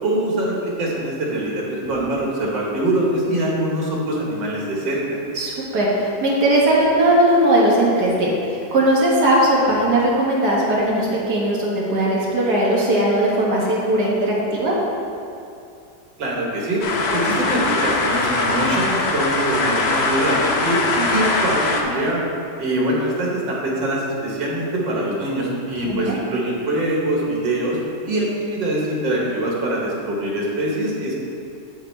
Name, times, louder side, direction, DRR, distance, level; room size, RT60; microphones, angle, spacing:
voice 1, 0.0-5.2 16.2-16.8 17.1-20.4 20.6-20.8 21.1-22.2 22.6-27.8 28.1-31.2, right 1 dB, 90° right, -3 dB, 2.2 m, -23 dB
voice 2, 5.4-8.3 8.7-14.8 21.0-21.1 25.9-26.2, right 1 dB, 60° right, -5 dB, 2.2 m, -18 dB
sound 1, 16.8-21.8, left 3 dB, 55° left, 0.7 m, -21 dB
8.5 x 7.8 x 3.4 m, 2.5 s
omnidirectional pair, 1.9 m